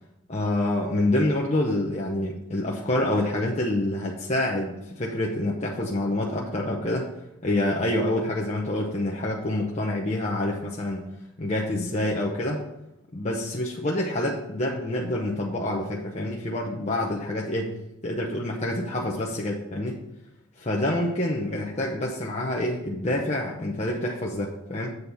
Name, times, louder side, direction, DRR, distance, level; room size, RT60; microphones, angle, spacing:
voice 1, 0.3-7.1 7.4-11.0 11.4-12.6 13.1-17.7 18.0-20.0 20.6-25.0, left 1 dB, 35° left, -2 dB, 0.8 m, -27 dB
8.0 x 4.3 x 7.0 m, 0.87 s
head